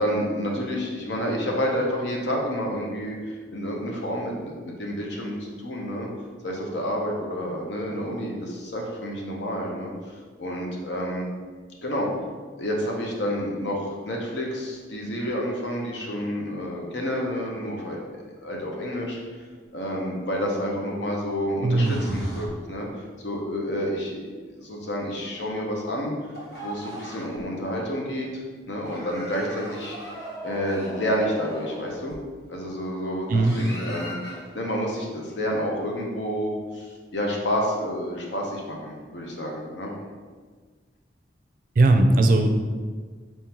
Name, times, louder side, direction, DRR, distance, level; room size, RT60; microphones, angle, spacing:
voice 1, 0.0-6.1 6.4-9.9 10.4-11.3 11.8-12.1 12.6-18.0 18.4-19.2 19.7-26.1 26.6-30.0 30.4-32.2 32.5-34.2 34.5-39.9, equal, 85° left, -1 dB, 0.8 m, -29 dB
voice 2, 21.6-22.2 33.3-33.5 41.8-42.5, right 2 dB, 50° right, 5 dB, 0.4 m, -19 dB
sound 1, 21.8-22.9 26.3-27.5 28.8-32.4 33.3-34.7, equal, 60° left, 1.1 m, -38 dB
4.1 x 3.7 x 3.0 m, 1.5 s
head